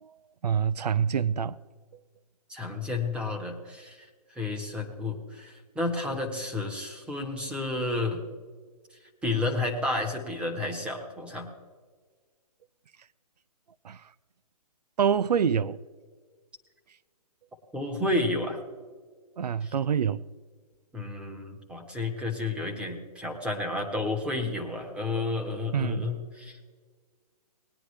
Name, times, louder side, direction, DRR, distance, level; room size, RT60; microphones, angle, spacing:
voice 1, 0.4-1.6 13.8-14.0 15.0-15.8 19.4-20.2 25.7-26.1, right 7 dB, 85° right, 0.5 m, -26 dB
voice 2, 2.5-4.1 4.3-8.2 9.2-11.5 17.7-18.6 19.6-19.7 20.9-26.6, left 2 dB, 5° right, 1.3 m, -31 dB
19.5 x 10.0 x 3.3 m
hypercardioid pair, 150°, 20 cm